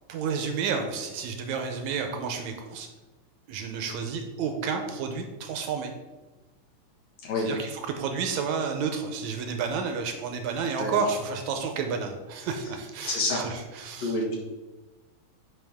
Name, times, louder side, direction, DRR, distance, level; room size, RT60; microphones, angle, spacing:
voice 1, 0.1-2.9 3.5-5.9 7.4-14.2, right 5 dB, 75° right, 5 dB, 1.9 m, -31 dB
voice 2, 13.0-13.4 14.0-14.4, left 2 dB, 65° left, -2 dB, 2.7 m, -28 dB
9.8 x 4.5 x 3.5 m, 1.2 s
omnidirectional pair, 3.5 m